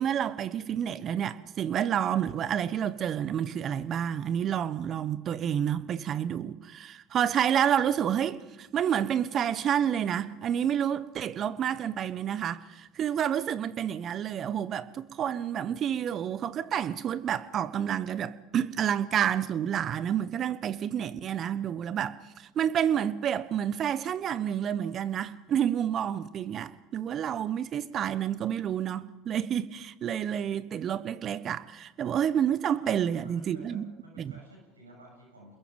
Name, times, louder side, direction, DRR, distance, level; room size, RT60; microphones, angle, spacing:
voice 1, 0.0-33.8 34.2-34.3, right 9 dB, 40° right, 1.1 m, -29 dB
voice 2, 32.6-35.6, right 1 dB, 90° right, 7.0 m, -54 dB
28.0 x 21.5 x 5.3 m
hypercardioid pair, 75°, 0 cm